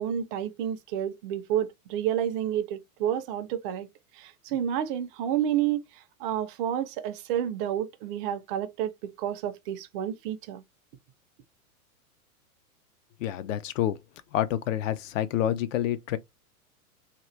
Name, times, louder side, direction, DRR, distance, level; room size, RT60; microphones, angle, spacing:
voice 1, 0.0-3.9 4.1-10.6, right 10 dB, 40° right, 0.5 m, -30 dB
voice 2, 13.2-14.0 14.3-16.2, left 11 dB, 55° left, 0.7 m, -28 dB
2.9 x 2.4 x 3.1 m
hypercardioid pair, 110°, 45 cm